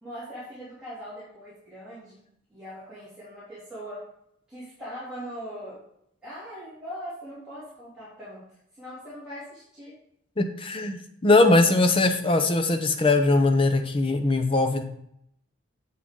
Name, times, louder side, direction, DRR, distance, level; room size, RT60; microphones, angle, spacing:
voice 1, 0.0-2.2 2.5-4.1 4.5-5.8 6.2-8.4 8.7-9.9, equal, 5° right, -13 dB, 2.9 m, -40 dB
voice 2, 10.4-14.8, left 2 dB, 25° left, 6 dB, 0.7 m, -21 dB
7.5 x 6.2 x 3.7 m, 0.74 s
head